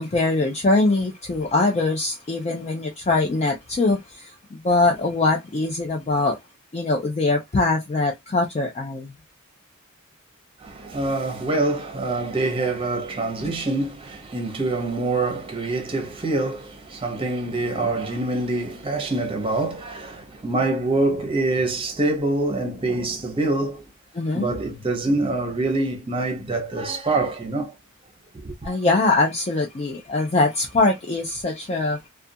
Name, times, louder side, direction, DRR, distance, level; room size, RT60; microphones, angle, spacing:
voice 1, 0.0-6.4 6.7-9.1 13.4-13.5 24.1-24.5 28.6-32.0, left 3 dB, 30° left, 0.4 m, -22 dB
voice 2, 10.6-23.8 24.3-27.7 28.4-28.8, right 2 dB, 25° right, 0.7 m, -25 dB
2.4 x 2.2 x 2.6 m
head